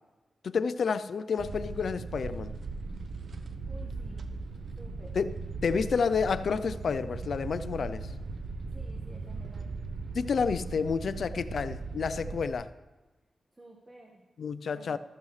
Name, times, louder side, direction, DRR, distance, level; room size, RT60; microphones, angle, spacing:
voice 1, 0.4-2.5 5.2-5.3 5.6-8.1 10.1-12.7 14.4-15.0, left 5 dB, 75° left, 0.5 m, -30 dB
sound 1, 1.4-12.5, right 3 dB, 70° right, 0.8 m, -38 dB
voice 2, 3.7-4.3 4.8-5.2 8.6-9.8 13.5-14.3 14.7-15.0, right 1 dB, 25° right, 1.5 m, -52 dB
14.0 x 14.0 x 3.2 m
cardioid pair, 60°, 0 cm